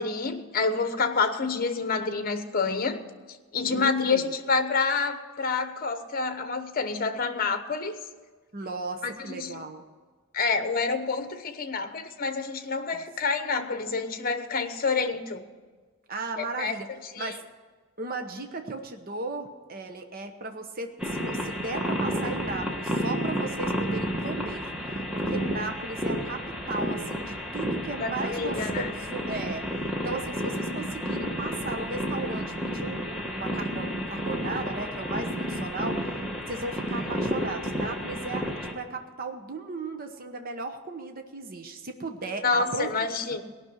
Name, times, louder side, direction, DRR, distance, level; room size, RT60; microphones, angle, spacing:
voice 1, 0.0-3.0 3.5-8.0 9.3-9.6 10.3-15.4 16.4-16.8 17.1-17.3 28.0-28.9 37.0-37.1 42.4-43.4, left 4 dB, 40° left, 8 dB, 1.0 m, -28 dB
voice 2, 3.7-4.3 8.5-9.8 12.9-13.0 16.1-16.9 17.2-17.4 18.0-24.7 25.1-29.6 30.0-36.0 36.5-38.5 38.7-42.9, right 3 dB, 40° right, 6 dB, 0.9 m, -36 dB
sound 1, 21.0-38.7, equal, 5° right, 1.3 m, -31 dB
18.0 x 6.1 x 9.6 m, 1.4 s
head